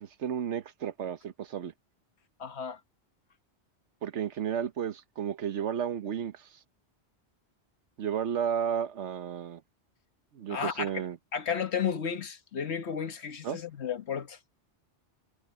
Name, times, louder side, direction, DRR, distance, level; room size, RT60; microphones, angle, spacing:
voice 1, 0.0-1.7 4.0-6.4 8.0-9.6 10.3-11.2 13.4-13.6, right 8 dB, 90° right, 1.2 m, -32 dB
voice 2, 2.4-2.8 10.5-11.0 11.3-14.4, left 7 dB, 70° left, 1.5 m, -33 dB
omnidirectional pair, 1.2 m